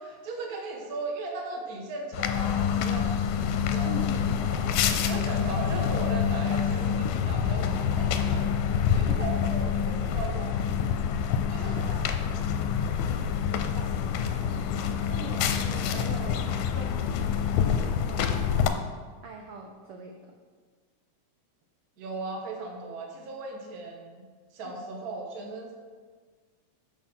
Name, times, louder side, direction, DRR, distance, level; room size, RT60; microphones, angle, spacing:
voice 1, 0.0-4.1 4.5-4.7 5.1-8.5 8.9-10.6 11.5-12.6 15.9-16.0 22.0-25.7, right 3 dB, 40° right, 0 dB, 1.4 m, -38 dB
sound 1, 2.1-18.7, left 8 dB, 85° left, 2.2 m, -27 dB
voice 2, 3.8-5.9 9.1-9.3 11.6-12.1 13.5-14.4 15.1-18.8 19.2-20.3 24.7-24.8, right 3 dB, 80° right, 2 dB, 1.2 m, -43 dB
9.4 x 6.9 x 6.1 m, 1.5 s
omnidirectional pair, 3.7 m